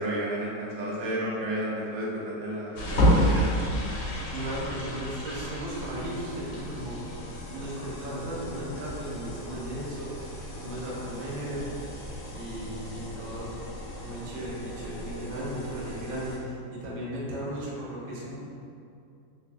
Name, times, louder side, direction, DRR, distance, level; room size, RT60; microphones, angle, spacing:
voice 1, 0.0-3.5, right 1 dB, 85° right, -5 dB, 1.3 m, -32 dB
sound 1, 2.8-16.4, equal, 85° left, 1.2 m, -32 dB
voice 2, 4.3-7.0 7.5-11.7 12.3-13.5 14.0-18.4, right 1 dB, 60° right, -6 dB, 1.1 m, -36 dB
3.4 x 2.7 x 2.5 m, 2.5 s
omnidirectional pair, 1.9 m